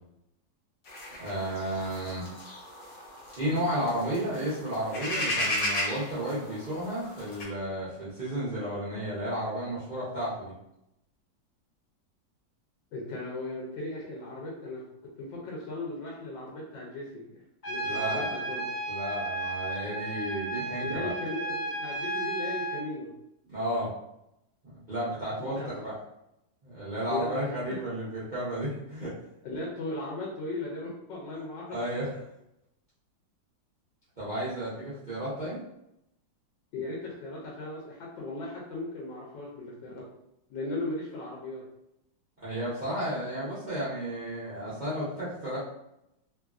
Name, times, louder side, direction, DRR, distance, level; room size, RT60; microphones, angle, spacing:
sound 1, 0.9-7.4, left 1 dB, 60° left, 1.3 m, -35 dB
voice 1, 1.2-2.3 3.4-10.5 17.8-18.3 18.9-21.1 23.5-23.9 24.6-25.9 26.6-29.1 31.7-32.1 34.2-35.6 42.4-45.6, right 1 dB, 60° right, -11 dB, 0.4 m, -33 dB
voice 2, 12.9-17.4 17.7-18.6 20.8-23.1 25.4-25.7 27.1-27.8 29.4-31.8 36.7-40.1 40.5-41.6, left 2 dB, 80° left, -3 dB, 1.3 m, -37 dB
Trumpet, 17.6-22.9, right 2 dB, 45° left, 0.9 m, -33 dB
3.2 x 2.3 x 2.4 m, 0.83 s
omnidirectional pair, 2.0 m